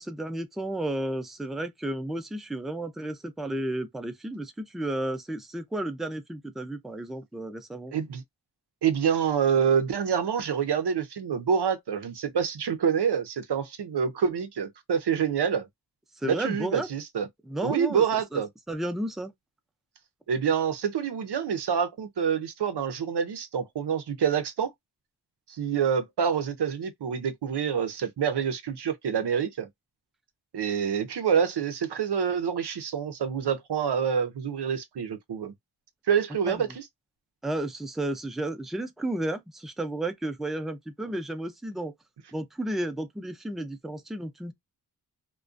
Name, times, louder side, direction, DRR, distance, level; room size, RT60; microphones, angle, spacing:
voice 1, 0.0-7.9 16.2-16.9 17.5-18.0 18.3-18.4 18.7-19.3 36.5-36.6 37.4-41.9 42.3-44.5, right 1 dB, ahead, 0.4 m, -32 dB
voice 2, 7.9-8.2 8.8-15.7 16.2-17.3 17.6-18.5 20.3-24.7 25.5-29.7 30.5-35.5 36.1-36.8, right 7 dB, 85° right, 0.6 m, -27 dB
2.4 x 2.2 x 2.4 m
wide cardioid pair, 70°, 39 cm